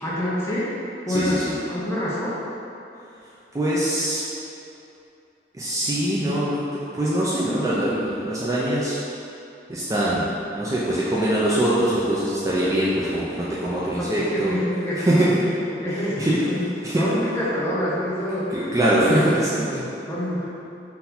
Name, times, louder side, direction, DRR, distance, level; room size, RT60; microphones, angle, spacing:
voice 1, 0.0-0.7 1.1-1.4 1.7-2.4 14.0-15.3 15.7-16.7 17.0-18.5 19.5-20.5, left 1 dB, 15° left, -8 dB, 0.7 m, -27 dB
voice 2, 1.1-1.6 3.5-4.2 5.5-6.7 6.9-9.0 9.7-10.3 10.6-14.6 15.0-15.3 16.2-16.4 16.8-17.1 18.5-19.7, right 1 dB, 20° right, -8 dB, 0.4 m, -22 dB
3.9 x 2.7 x 4.2 m, 2.7 s
head